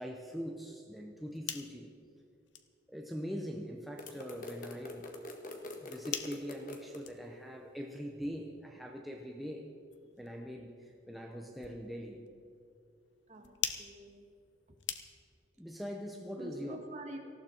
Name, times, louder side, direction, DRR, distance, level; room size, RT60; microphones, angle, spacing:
voice 1, 0.0-1.9 2.9-5.0 5.8-9.7 10.2-12.3 15.6-16.8, equal, ahead, 0 dB, 0.8 m, -42 dB
sound 1, 1.1-15.5, left 9 dB, 75° left, 0.9 m, -47 dB
sound 2, 4.0-7.0, left 2 dB, 45° left, 1.5 m, -45 dB
voice 2, 13.3-14.3 14.7-14.8 16.4-17.2, right 1 dB, 40° right, 3 dB, 1.7 m, -47 dB
18.5 x 14.5 x 4.5 m, 2.4 s
head